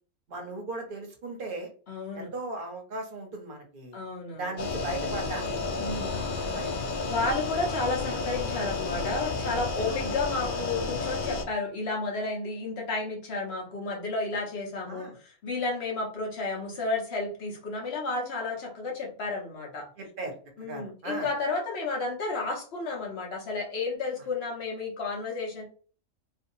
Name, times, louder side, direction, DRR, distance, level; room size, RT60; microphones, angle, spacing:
voice 1, 0.3-1.7 2.1-4.0 4.4-5.5 6.5-6.7 9.8-10.1 14.9-15.2 20.0-21.3, right 2 dB, 50° right, 2 dB, 0.8 m, -37 dB
voice 2, 1.9-2.3 3.9-4.5 5.8-6.3 7.1-19.9 20.6-25.6, left 3 dB, 55° left, -1 dB, 1.1 m, -32 dB
sound 1, 4.6-11.4, left 3 dB, 90° left, 0.4 m, -31 dB
2.7 x 2.4 x 2.7 m, 0.40 s
omnidirectional pair, 1.3 m